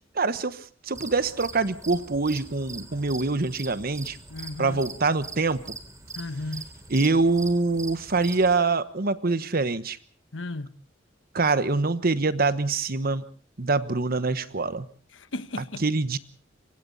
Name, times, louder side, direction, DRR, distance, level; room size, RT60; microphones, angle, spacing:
voice 1, 0.1-0.6 0.9-4.2 4.6-5.8 6.9-10.0 11.3-13.2 13.6-14.8 15.8-16.2, right 3 dB, 50° right, 1.2 m, -24 dB
sound 1, 0.9-8.6, right 3 dB, 20° right, 3.2 m, -42 dB
voice 2, 4.3-4.8 6.1-6.7 10.3-10.7 15.1-15.8, left 2 dB, 75° left, 1.2 m, -35 dB
27.5 x 24.5 x 4.1 m
head